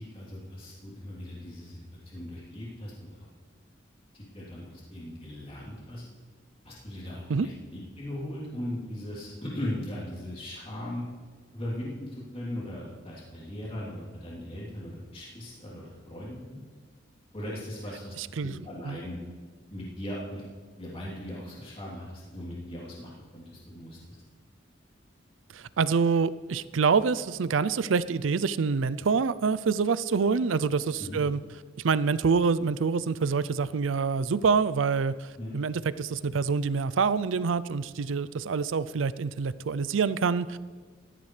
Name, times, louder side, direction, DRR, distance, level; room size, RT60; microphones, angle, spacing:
voice 1, 0.0-3.2 4.1-6.0 6.6-7.5 8.0-11.0 11.5-16.6 17.3-18.1 18.4-19.2 19.7-20.4 20.8-24.2 31.0-31.2 35.4-35.5, left 1 dB, 30° left, -6 dB, 3.3 m, -38 dB
voice 2, 18.2-18.5 18.8-19.0 25.5-31.4 31.8-35.3 35.5-40.6, right 5 dB, 90° right, 16 dB, 0.5 m, -26 dB
17.5 x 14.0 x 3.3 m, 1.5 s
head